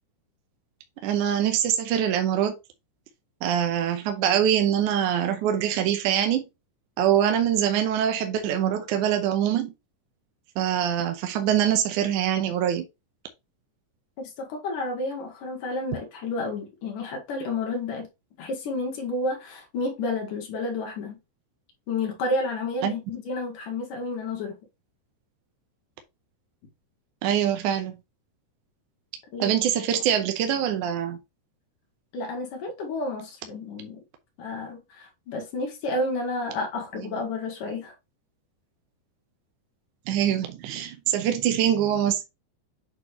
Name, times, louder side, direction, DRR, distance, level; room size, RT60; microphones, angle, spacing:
voice 1, 1.0-2.6 3.4-6.5 7.0-9.7 10.6-12.8 22.8-22.9 27.2-28.0 29.4-31.2 40.1-42.2, right 10 dB, 75° right, 2.1 m, -24 dB
voice 2, 14.2-18.1 18.4-21.2 21.9-24.6 29.3-29.5 32.1-34.0 34.4-37.9, left 2 dB, 75° left, 3.5 m, -31 dB
8.3 x 4.0 x 3.1 m
omnidirectional pair, 3.8 m